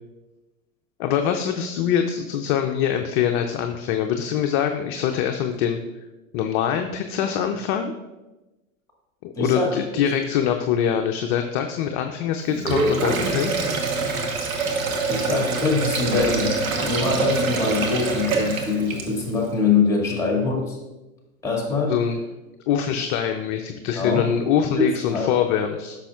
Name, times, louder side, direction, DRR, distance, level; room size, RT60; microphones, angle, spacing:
voice 1, 1.0-5.8 6.3-7.9 9.2-13.5 21.8-22.2 22.7-26.0, left 8 dB, 40° left, 5 dB, 0.5 m, -24 dB
voice 2, 9.4-9.7 15.1-20.8 21.4-21.9 23.9-24.2 24.6-25.3, left 4 dB, 5° left, -1 dB, 2.0 m, -23 dB
Sink (filling or washing), 12.5-19.4, right 3 dB, 80° right, 1.2 m, -25 dB
9.8 x 6.2 x 2.4 m, 1.1 s
hypercardioid pair, 105°, 41 cm